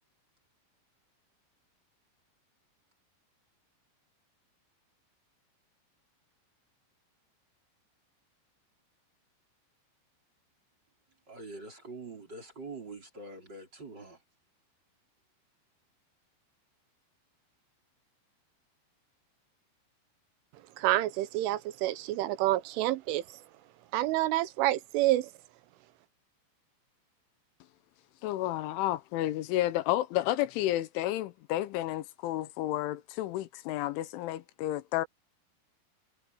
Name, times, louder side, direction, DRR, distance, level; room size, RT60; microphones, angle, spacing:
voice 1, 11.3-14.2, right 3 dB, 20° right, 4.7 m, -44 dB
voice 2, 20.8-23.2 23.9-25.3, right 15 dB, 80° right, 3.5 m, -28 dB
voice 3, 28.2-35.1, left 14 dB, 80° left, 3.3 m, -31 dB
omnidirectional pair, 5.6 m